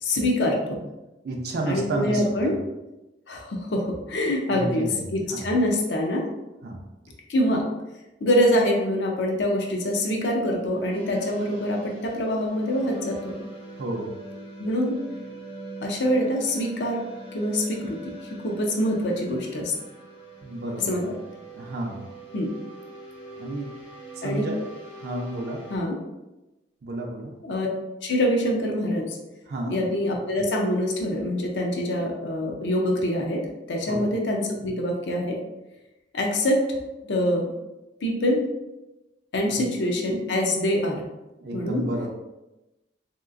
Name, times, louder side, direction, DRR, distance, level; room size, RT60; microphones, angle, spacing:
voice 1, 0.0-0.8 1.7-2.5 3.3-6.2 7.3-7.6 8.2-13.3 14.6-14.9 15.8-17.0 17.3-18.1 18.4-19.7 20.9-21.1 22.3-22.5 24.2-24.4 25.7-26.0 27.4-27.7 28.0-29.2 29.7-33.4 33.7-35.4 36.1-36.6 37.1-37.4 38.0-38.4 39.3-41.0 41.5-41.8, left 1 dB, 70° left, 0 dB, 0.6 m, -25 dB
voice 2, 1.2-2.5 4.5-5.0 5.3-5.5 6.6-6.8 13.8-14.1 20.4-21.1 21.5-22.1 23.4-23.7 24.1-24.7 24.9-25.6 26.8-27.3 29.5-29.8 33.9-34.1 39.5-39.6 41.4-42.1, right 1 dB, 60° right, 0 dB, 0.4 m, -31 dB
sound 1, 10.7-25.8, right 2 dB, 85° left, 1.1 m, -42 dB
3.1 x 2.9 x 2.5 m, 1.0 s
head